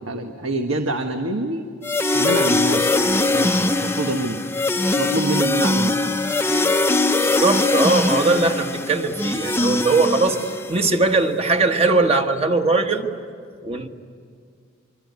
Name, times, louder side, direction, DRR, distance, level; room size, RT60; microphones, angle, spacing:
voice 1, 0.0-1.6 2.1-4.4 5.0-6.2, right 1 dB, 85° right, 5 dB, 1.5 m, -26 dB
sound 1, 1.8-11.0, left 2 dB, 10° left, 0.7 m, -21 dB
voice 2, 7.2-13.1 13.6-13.9, right 3 dB, 30° right, 5 dB, 1.5 m, -20 dB
25.0 x 25.0 x 9.5 m, 2.1 s
head